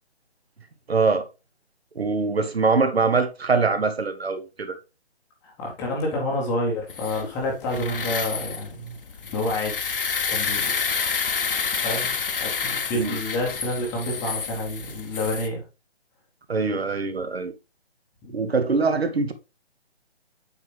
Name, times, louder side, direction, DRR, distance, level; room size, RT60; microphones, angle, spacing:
voice 1, 0.9-1.3 1.9-4.8 12.9-13.2 16.5-17.5 18.3-19.3, right 4 dB, 70° right, 1.2 m, -23 dB
voice 2, 5.4-9.0 9.3-9.9 10.3-10.7 11.8-15.6 18.2-18.3, left 1 dB, 10° left, 0.9 m, -28 dB
sound 1, 6.9-15.5, left 6 dB, 55° left, 0.9 m, -29 dB
8.6 x 4.2 x 3.3 m
figure-of-eight pair, 145°, 33 cm